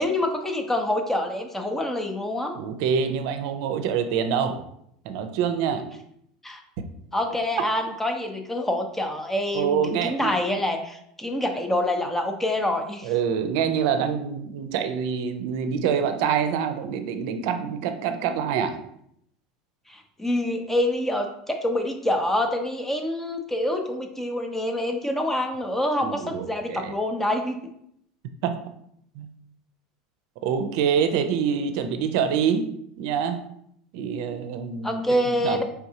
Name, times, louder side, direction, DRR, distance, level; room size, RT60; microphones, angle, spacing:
voice 1, 0.0-2.6 6.4-6.6 7.1-13.1 19.9-27.6 34.8-35.6, left 1 dB, 10° left, 4 dB, 0.7 m, -26 dB
voice 2, 2.6-4.6 5.0-5.9 9.5-10.3 13.0-18.7 26.0-26.9 28.4-28.5 29.2-29.3 30.4-32.7 33.0-33.4 33.9-35.0 35.4-35.6, right 7 dB, 65° right, 8 dB, 0.5 m, -25 dB
4.6 x 3.5 x 2.8 m, 0.72 s
hypercardioid pair, 95°, 3 cm